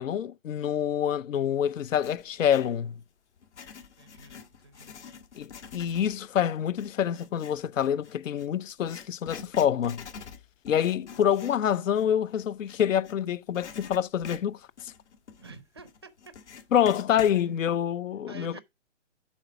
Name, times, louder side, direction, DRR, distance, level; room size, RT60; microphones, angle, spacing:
voice 1, 0.0-2.9 5.4-10.0 10.6-14.9 16.7-18.6, left 9 dB, 90° left, 0.6 m, -27 dB
Writing, 1.8-2.8 3.4-13.2 13.5-17.4, left 6 dB, 65° left, 1.5 m, -47 dB
voice 2, 4.0-5.0 15.4-16.3 17.3-17.5 18.3-18.6, right 4 dB, 20° right, 0.4 m, -49 dB
7.2 x 4.1 x 5.8 m
hypercardioid pair, 160°, 37 cm